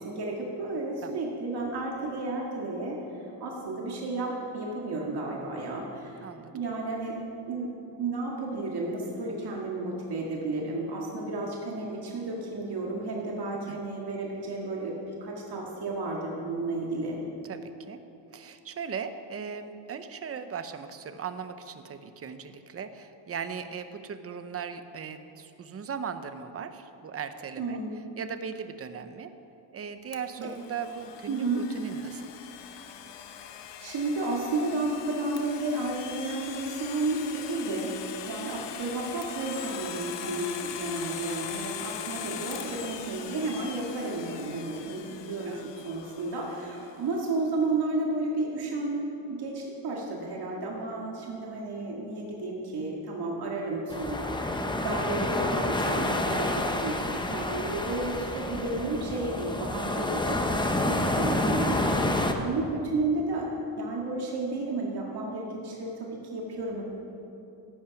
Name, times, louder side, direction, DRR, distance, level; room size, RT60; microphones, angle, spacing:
voice 1, 0.0-6.2 6.5-7.2 7.5-17.2 27.6-27.9 30.4-30.5 31.3-31.6 33.8-38.0 38.3-63.5 63.8-66.8, right 2 dB, 65° right, -2 dB, 1.9 m, -32 dB
voice 2, 6.2-6.5 13.7-13.8 17.5-18.0 18.3-27.8 28.2-29.3 29.7-32.3 45.5-45.7 62.3-62.8, right 6 dB, 35° right, 9 dB, 0.7 m, -38 dB
Domestic sounds home sounds, 30.1-46.9, left 9 dB, 75° left, 0.9 m, -41 dB
sound 1, 53.9-62.3, left 1 dB, 10° left, 0.7 m, -28 dB
14.5 x 8.7 x 5.8 m, 2.9 s
cardioid pair, 140°, 43 cm